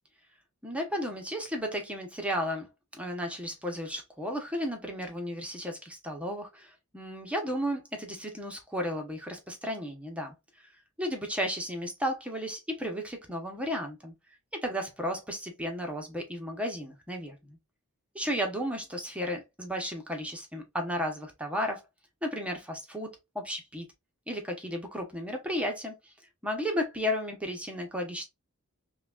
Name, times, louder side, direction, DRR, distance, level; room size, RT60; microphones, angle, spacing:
voice 1, 0.6-2.7 2.9-10.3 11.0-14.1 14.5-17.6 18.1-21.8 22.2-23.9 24.3-26.1 26.4-28.3, equal, 5° right, 0.7 m, -34 dB
5.7 x 2.3 x 2.3 m
head